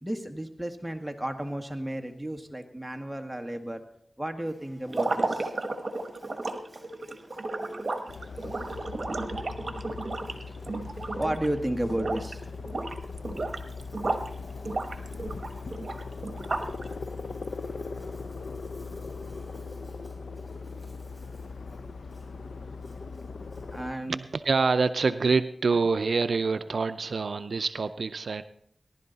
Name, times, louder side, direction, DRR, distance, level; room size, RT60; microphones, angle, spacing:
voice 1, 0.0-3.8 4.2-5.5 10.3-12.5 23.7-24.2, right 1 dB, 5° right, 4 dB, 1.7 m, -33 dB
Buzz, 4.4-24.2, right 1 dB, 25° right, 7.6 m, -60 dB
sound 1, 4.9-11.5 11.8-12.3 12.6-14.3 14.6-16.8, right 2 dB, 60° right, 1.1 m, -33 dB
sound 2, 8.1-23.9, left 4 dB, 90° left, 0.6 m, -39 dB
voice 2, 24.3-28.4, right 4 dB, 80° right, 11 dB, 0.5 m, -26 dB
19.0 x 11.5 x 4.1 m, 0.70 s
cardioid pair, 50°, 0 cm